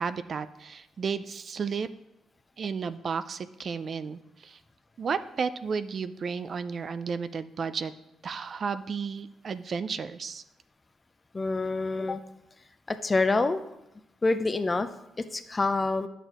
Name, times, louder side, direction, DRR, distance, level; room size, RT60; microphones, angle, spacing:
voice 1, 0.0-1.9 2.6-4.6 5.0-7.9 8.2-10.4, right 5 dB, 50° right, 12 dB, 0.4 m, -33 dB
voice 2, 11.3-12.2 12.9-13.6 14.2-14.9 15.2-16.1, left 3 dB, 25° left, 10 dB, 0.5 m, -26 dB
10.5 x 6.7 x 3.0 m, 0.88 s
cardioid pair, 90°, 0 cm